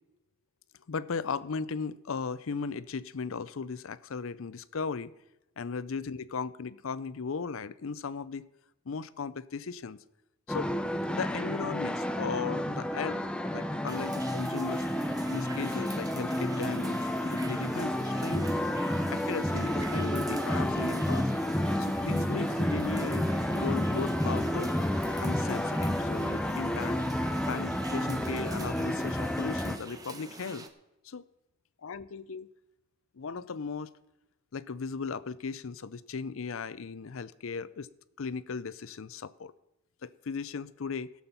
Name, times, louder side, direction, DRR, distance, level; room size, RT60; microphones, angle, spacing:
voice 1, 0.9-5.1 5.6-8.5 8.9-10.0 10.5-10.7 11.1-13.2 13.5-14.9 15.3-18.5 19.1-21.3 21.8-24.7 25.2-27.0 27.5-30.7 31.0-31.2 31.8-32.5 33.1-33.9 34.5-37.9 38.2-39.5 40.0-41.1, left 5 dB, 75° left, 0.6 m, -37 dB
sound 1, 10.5-29.8, left 1 dB, 5° left, 0.5 m, -30 dB
sound 2, 13.9-30.7, right 3 dB, 20° right, 0.9 m, -46 dB
17.0 x 7.2 x 5.8 m
head